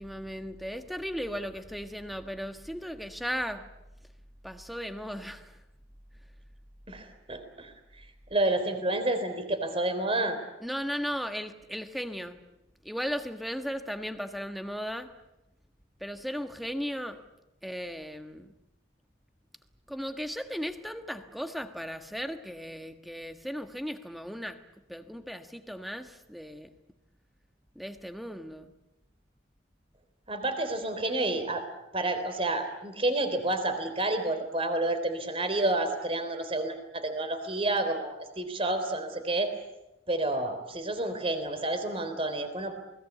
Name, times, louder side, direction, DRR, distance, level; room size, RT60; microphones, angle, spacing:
voice 1, 0.0-3.7 4.4-5.5 10.6-12.4 12.8-15.1 16.0-17.2 17.6-18.5 19.9-24.6 24.9-26.7 27.7-28.7, equal, ahead, 1.4 m, -36 dB
voice 2, 6.9-7.7 8.3-10.4 30.3-31.6 31.9-39.5 40.1-42.7, right 2 dB, 30° right, 3.6 m, -29 dB
28.5 x 21.0 x 8.3 m
head